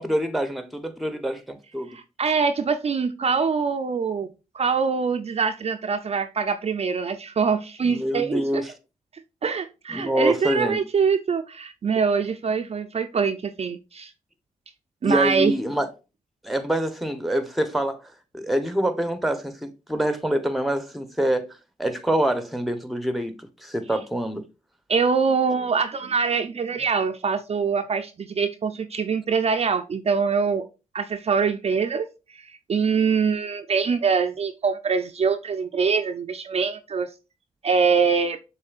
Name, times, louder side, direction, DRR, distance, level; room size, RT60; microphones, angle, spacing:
voice 1, 0.0-1.9 7.8-8.7 9.9-10.8 15.0-15.9 16.4-21.5 21.8-23.3 23.6-24.4, right 1 dB, ahead, 0.8 m, -25 dB
voice 2, 1.9-4.3 4.5-8.6 9.4-14.1 15.0-15.5 24.9-30.7 30.9-37.1 37.6-38.4, right 5 dB, 45° right, 0.4 m, -24 dB
6.5 x 3.2 x 2.4 m
cardioid pair, 60°, 15 cm